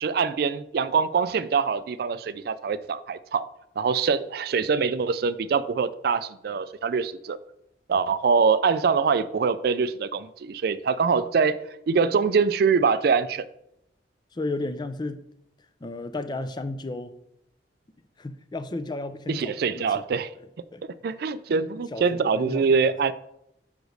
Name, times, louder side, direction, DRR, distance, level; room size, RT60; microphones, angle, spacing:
voice 1, 0.0-3.5 3.8-7.4 7.9-11.6 11.9-13.5 19.3-20.3 21.0-23.1, right 5 dB, 60° right, 0.4 m, -24 dB
voice 2, 14.3-15.2 15.8-17.1 18.2-20.0 20.7-20.8 21.9-22.6, left 2 dB, 25° left, 0.4 m, -33 dB
5.2 x 4.9 x 6.3 m
head